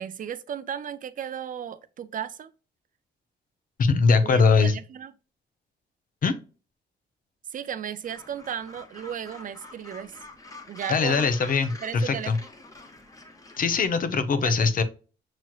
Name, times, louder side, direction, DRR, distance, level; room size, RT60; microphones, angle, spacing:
voice 1, 0.0-2.5 4.2-5.1 7.5-10.2 10.7-11.3 11.8-12.3 14.4-14.7, right 9 dB, 45° right, 0.4 m, -35 dB
voice 2, 3.8-4.7 6.2-6.4 10.9-12.4 13.6-14.8, left 4 dB, 50° left, 0.6 m, -21 dB
Gull seagull, 8.0-13.9, left 2 dB, 20° left, 0.9 m, -46 dB
5.9 x 3.0 x 2.3 m
cardioid pair, 105°, 19 cm